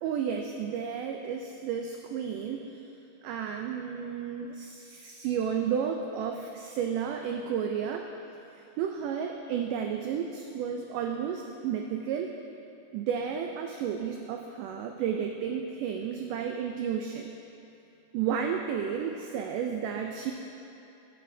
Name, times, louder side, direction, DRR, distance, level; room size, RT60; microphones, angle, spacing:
voice 1, 0.0-2.8 3.2-8.1 8.8-12.3 12.9-17.3 18.1-20.3, right 7 dB, 85° right, 3 dB, 1.9 m, -32 dB
16.5 x 9.7 x 2.7 m, 2.8 s
omnidirectional pair, 4.3 m